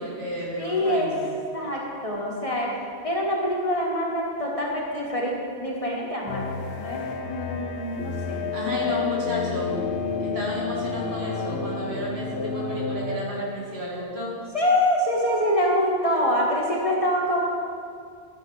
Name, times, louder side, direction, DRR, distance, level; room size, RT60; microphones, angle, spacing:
voice 1, 0.0-1.3 8.5-9.8 10.2-14.4, equal, 70° right, -5 dB, 2.4 m, -32 dB
voice 2, 0.6-1.1 1.5-2.7 3.0-8.4 8.8-8.9 14.5-17.5, left 1 dB, 30° left, -3 dB, 1.4 m, -25 dB
sound 1, 6.3-13.2, left 5 dB, 65° left, 1.0 m, -30 dB
12.0 x 5.6 x 5.3 m, 2.3 s
omnidirectional pair, 1.1 m